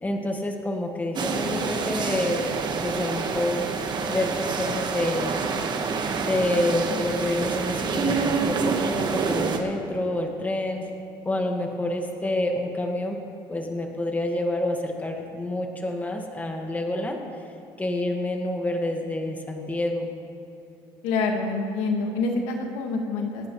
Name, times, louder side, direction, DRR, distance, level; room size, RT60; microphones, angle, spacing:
voice 1, 0.0-2.5 2.8-5.4 6.2-10.9 11.3-13.2 13.5-17.4 17.8-20.1, left 1 dB, 15° left, 2 dB, 1.7 m, -28 dB
sound 1, 1.2-9.6, right 5 dB, 45° right, 1.5 m, -27 dB
voice 2, 21.0-23.5, left 3 dB, 85° left, 2 dB, 1.8 m, -26 dB
27.5 x 9.6 x 3.2 m, 2.8 s
cardioid pair, 100°, 11 cm